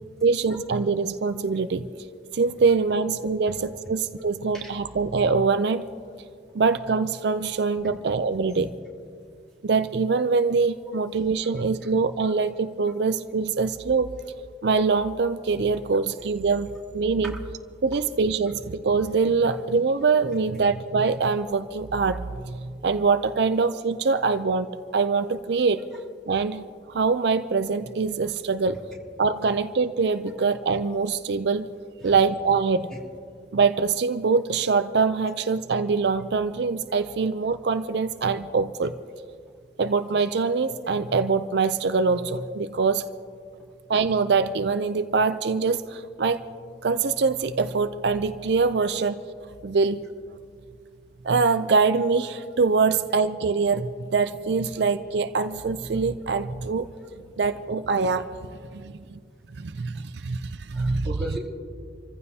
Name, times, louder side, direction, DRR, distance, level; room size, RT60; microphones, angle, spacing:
voice 1, 0.2-1.8 2.3-5.9 6.5-8.7 9.6-14.2 14.6-17.3 17.8-25.9 26.3-28.8 29.2-31.7 32.0-32.9 33.5-38.9 39.8-43.1 43.9-46.5 46.8-49.2 49.6-50.1 51.2-56.9 57.4-58.3 58.7-59.2 59.6-61.1, right 4 dB, 65° right, 10 dB, 0.5 m, -24 dB
voice 2, 58.6-59.1 60.4-61.4, equal, 5° left, -6 dB, 2.9 m, -38 dB
27.5 x 15.0 x 2.8 m, 2.2 s
head